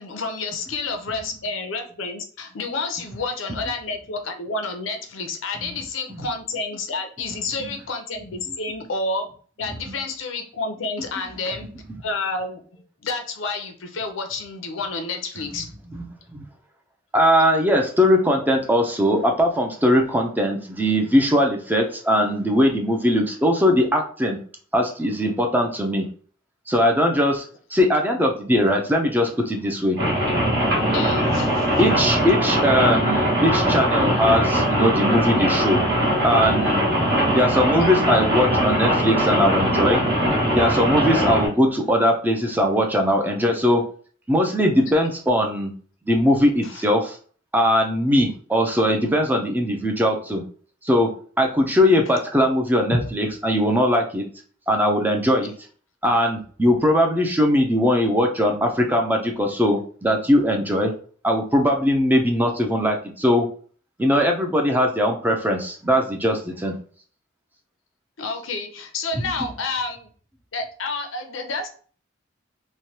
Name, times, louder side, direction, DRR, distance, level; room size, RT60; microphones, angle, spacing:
voice 1, 0.0-9.3 9.6-11.7 12.0-12.6 13.0-15.7 30.9-31.9 37.8-37.9 46.6-46.9 52.0-52.2 68.2-70.1 70.5-71.7, left 3 dB, 80° left, 5 dB, 0.6 m, -30 dB
voice 2, 17.1-24.4 24.7-26.1 26.7-27.4 27.7-30.0 31.8-35.8 36.2-36.9 37.3-40.0 40.5-43.8 44.3-45.7 46.1-47.2 47.5-50.4 50.8-54.3 54.7-55.5 56.0-61.0 61.2-63.5 64.0-66.7, equal, 10° right, 3 dB, 0.4 m, -20 dB
Rain, 30.0-41.5, equal, 60° right, 1.4 m, -21 dB
3.1 x 2.1 x 2.7 m, 0.43 s
head